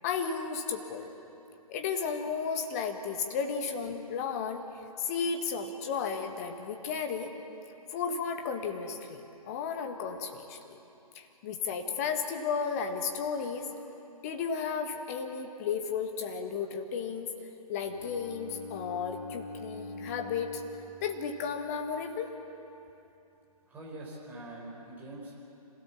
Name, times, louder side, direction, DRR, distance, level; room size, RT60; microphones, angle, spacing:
voice 1, 0.0-1.1 1.7-4.6 5.0-7.3 7.9-10.8 11.1-13.7 14.2-17.3 17.7-20.6 21.0-22.3, left 6 dB, 25° left, 5 dB, 1.6 m, -33 dB
Bowed string instrument, 17.8-21.9, left 2 dB, 50° left, 4.4 m, -44 dB
voice 2, 23.7-25.4, right 1 dB, 10° right, -5 dB, 4.6 m, -44 dB
26.5 x 16.5 x 7.2 m, 2.8 s
figure-of-eight pair, 135°, 20 cm